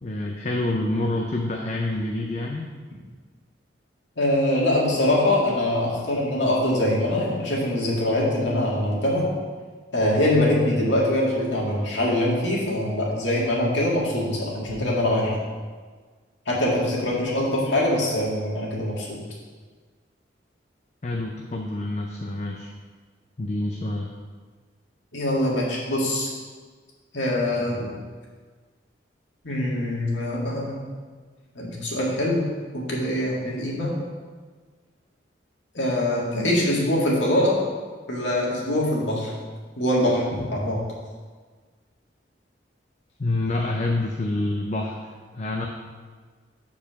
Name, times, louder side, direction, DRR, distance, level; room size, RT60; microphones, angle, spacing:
voice 1, 0.0-2.7 21.0-22.7 23.4-24.1 43.2-45.7, left 2 dB, 35° left, 1 dB, 0.5 m, -27 dB
voice 2, 4.2-9.3 9.9-15.4 16.5-19.2 25.1-26.3 27.1-27.9 29.4-30.8 31.6-32.5 32.7-33.9 35.7-37.5 38.1-39.3 39.8-40.8, left 1 dB, 80° left, -4 dB, 2.0 m, -23 dB
7.2 x 4.8 x 5.8 m, 1.5 s
head